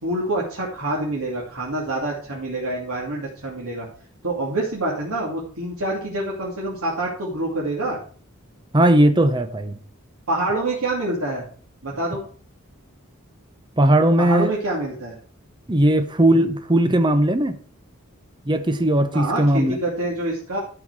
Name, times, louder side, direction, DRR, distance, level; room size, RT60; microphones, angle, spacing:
voice 1, 0.0-3.9 4.2-8.0 10.3-11.4 11.8-12.2 14.2-15.2 19.1-20.6, right 2 dB, 85° right, -4 dB, 2.6 m, -26 dB
voice 2, 8.7-9.8 13.8-14.5 15.7-17.6 18.5-19.8, right 1 dB, 20° right, 9 dB, 0.8 m, -18 dB
12.5 x 6.0 x 4.8 m, 0.44 s
head